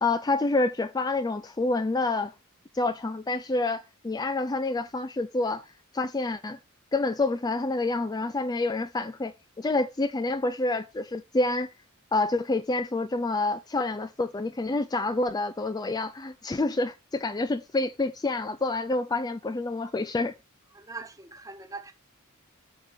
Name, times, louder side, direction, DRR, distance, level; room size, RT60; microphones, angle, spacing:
voice 1, 0.0-2.3 2.7-5.6 5.9-6.6 6.9-11.7 12.1-20.3, left 2 dB, 20° left, 0.4 m, -28 dB
voice 2, 20.7-21.9, right 3 dB, 15° right, 1.4 m, -41 dB
6.6 x 6.0 x 6.0 m
head